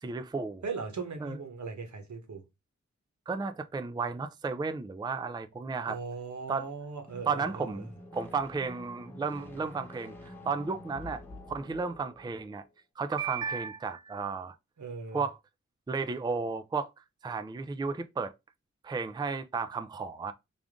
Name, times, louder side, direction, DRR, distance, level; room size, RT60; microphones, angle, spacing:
voice 1, 0.0-0.6 1.2-1.4 3.3-6.0 6.5-6.7 7.3-11.2 11.5-12.6 13.0-14.5 15.1-15.4 15.9-16.9 17.2-18.3 18.8-20.3, right 4 dB, 15° right, 0.4 m, -33 dB
voice 2, 0.6-2.4 5.9-7.9 14.8-15.2, right 4 dB, 75° right, 1.2 m, -39 dB
sound 1, 7.0-12.6, left 1 dB, 5° left, 1.1 m, -48 dB
3.6 x 2.5 x 3.6 m
cardioid pair, 50°, 29 cm